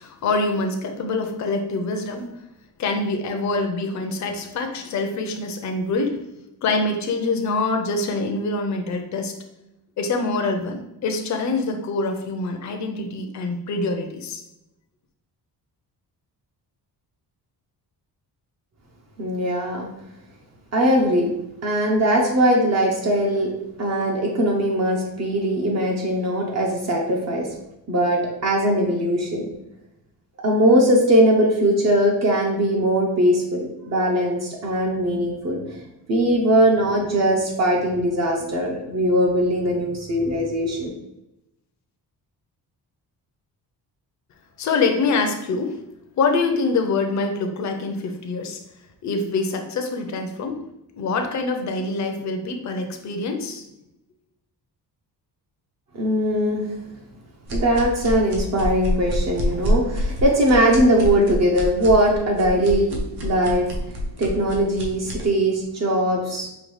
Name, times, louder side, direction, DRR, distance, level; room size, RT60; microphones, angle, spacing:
voice 1, 0.0-2.2 2.8-6.2 6.6-9.3 10.0-14.4 44.6-45.8 46.2-48.6 49.0-50.6 50.9-53.6, left 3 dB, 45° left, 4 dB, 0.5 m, -25 dB
voice 2, 19.2-19.9 20.7-21.3 21.6-23.5 23.8-27.5 27.9-29.5 30.4-35.8 36.1-40.9 55.9-56.7 57.5-63.7 64.2-66.5, right 1 dB, 40° right, -1 dB, 0.7 m, -20 dB
sound 1, 57.5-65.3, equal, 70° right, 0.9 m, -27 dB
5.1 x 2.3 x 3.1 m, 0.86 s
cardioid pair, 155°, 41 cm